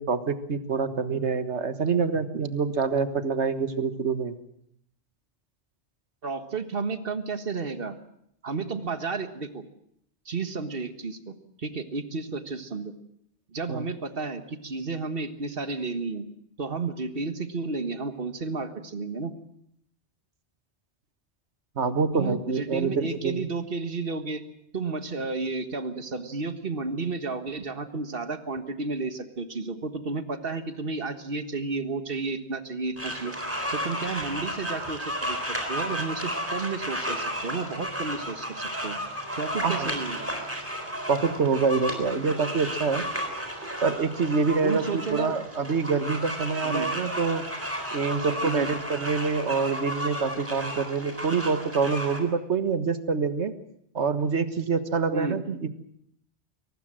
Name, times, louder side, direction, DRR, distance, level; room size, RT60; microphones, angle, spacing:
voice 1, 0.0-4.4 13.7-13.9 21.8-23.4 39.6-39.9 41.1-43.1 43.8-47.4 47.9-53.5 53.9-55.7, right 5 dB, 80° right, 11 dB, 1.7 m, -26 dB
voice 2, 6.2-8.0 8.4-9.6 10.3-13.0 13.5-16.2 16.6-19.3 22.1-24.4 24.7-33.4 33.7-39.0 39.4-40.3 44.6-45.4 46.6-46.9 48.4-48.7 55.1-55.4, right 4 dB, 55° right, 9 dB, 1.8 m, -32 dB
sound 1, 33.0-52.2, equal, 10° right, 4.0 m, -33 dB
22.5 x 19.0 x 7.6 m, 0.71 s
omnidirectional pair, 1.1 m